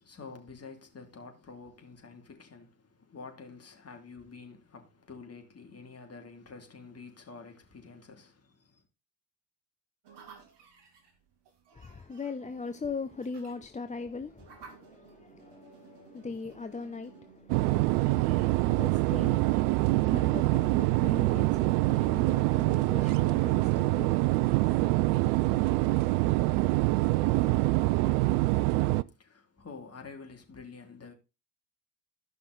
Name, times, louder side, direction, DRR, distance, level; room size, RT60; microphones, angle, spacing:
voice 1, 0.0-8.8 29.0-31.1, left 4 dB, 30° left, 2.8 m, -48 dB
sound 1, 10.0-19.6, right 5 dB, 55° right, 2.5 m, -56 dB
voice 2, 11.7-24.3, left 4 dB, 15° left, 0.7 m, -41 dB
sound 2, 17.5-29.0, right 20 dB, 75° right, 0.6 m, -25 dB
14.0 x 5.7 x 3.9 m
hypercardioid pair, 50°, 48 cm